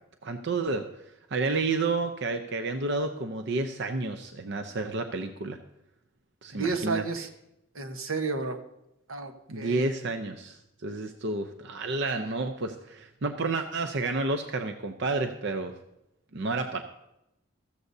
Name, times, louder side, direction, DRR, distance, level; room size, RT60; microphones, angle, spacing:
voice 1, 0.2-0.8 1.3-5.6 6.4-7.3 9.5-15.7 16.3-16.8, right 3 dB, 60° right, 7 dB, 0.6 m, -30 dB
voice 2, 6.5-7.3 7.7-8.6 9.1-9.9, right 4 dB, 85° right, 7 dB, 1.2 m, -31 dB
14.5 x 14.0 x 2.7 m, 0.87 s
head